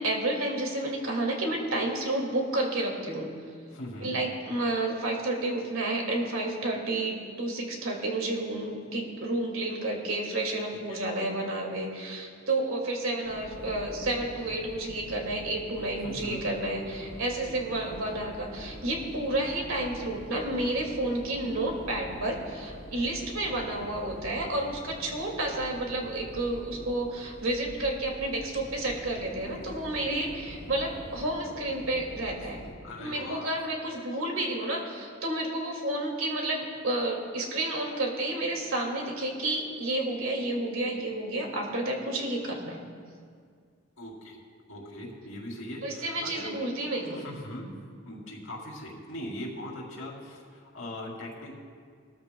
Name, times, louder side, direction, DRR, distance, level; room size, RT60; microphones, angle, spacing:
voice 1, 0.0-3.3 4.0-32.6 33.0-42.8 45.8-47.2, right 2 dB, 75° right, 0 dB, 2.3 m, -31 dB
voice 2, 3.7-4.1 10.9-11.0 16.0-16.5 17.5-17.8 32.4-32.5 32.8-33.5 44.0-44.4 44.7-46.6 47.1-47.7 48.0-51.5, left 1 dB, 75° left, -3 dB, 3.2 m, -40 dB
sound 1, 13.2-32.7, equal, ahead, 3.1 m, -45 dB
20.0 x 13.5 x 2.3 m, 2.1 s
head